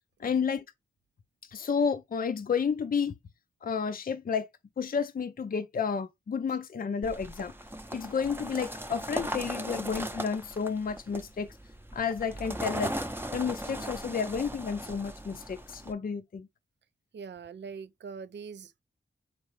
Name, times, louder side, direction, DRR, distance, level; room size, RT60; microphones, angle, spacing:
voice 1, 0.2-0.6 1.5-3.1 3.6-4.5 4.8-7.5 7.9-11.5 11.9-12.9 13.3-16.5, left 6 dB, 45° left, 0.4 m, -31 dB
sound 1, 7.0-15.9, right 1 dB, 10° right, 0.6 m, -38 dB
voice 2, 17.1-18.8, right 5 dB, 60° right, 0.4 m, -43 dB
4.3 x 3.7 x 3.1 m
cardioid pair, 50°, 20 cm